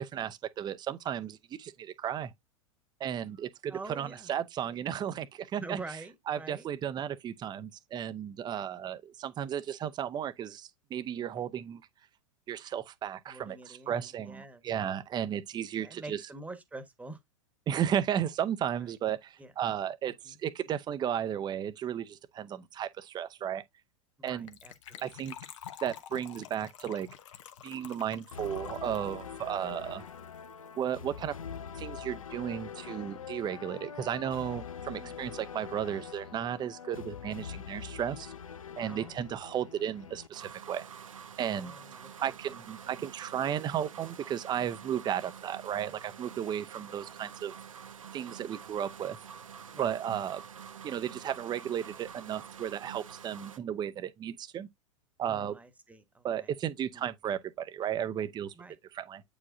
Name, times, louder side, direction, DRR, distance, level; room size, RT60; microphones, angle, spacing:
voice 1, 0.0-2.3 3.0-5.8 6.3-11.8 12.5-16.2 17.7-23.6 24.2-24.5 25.0-25.3 25.8-27.1 27.6-30.0 30.8-31.3 31.8-38.3 38.8-40.9 41.4-41.7 42.2-47.5 48.1-49.2 49.8-50.4 50.8-54.7 55.2-55.5 56.2-58.5 58.9-59.2, right 9 dB, 25° right, 0.7 m, -34 dB
voice 2, 3.7-4.3 4.7-4.8 5.6-6.7 13.3-14.6 15.8-17.2 18.8-18.9 19.4-19.5 20.2-20.4 24.2-25.3 34.9-35.2 38.9-39.2 41.5-42.4 42.7-43.0 49.7-50.0 55.3-56.5 56.9-57.1 58.5-58.8, right 3 dB, 10° right, 1.2 m, -46 dB
Gurgling / Trickle dribble / Fill (with liquid), 24.3-30.5 30.8-30.9 31.0-31.3 31.6-31.7, left 9 dB, 65° left, 1.1 m, -48 dB
sound 1, 28.3-40.3, left 7 dB, 85° left, 0.6 m, -44 dB
sound 2, 40.3-53.6, right 7 dB, 85° right, 0.9 m, -47 dB
8.3 x 4.9 x 2.6 m
hypercardioid pair, 95°, 17 cm